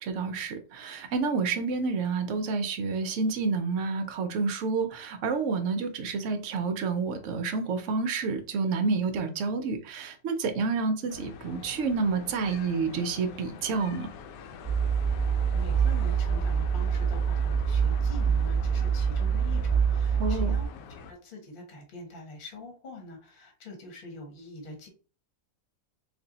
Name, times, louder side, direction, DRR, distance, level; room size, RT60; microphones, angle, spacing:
voice 1, 0.0-14.1 20.2-20.6, right 4 dB, 70° right, 0.7 m, -29 dB
sound 1, 11.1-21.1, left 5 dB, 80° left, 1.2 m, -44 dB
sound 2, 14.6-20.7, right 6 dB, 10° left, 0.6 m, -25 dB
voice 2, 15.5-20.7 21.0-24.9, left 2 dB, 35° left, 1.0 m, -44 dB
3.3 x 2.6 x 3.9 m
omnidirectional pair, 1.8 m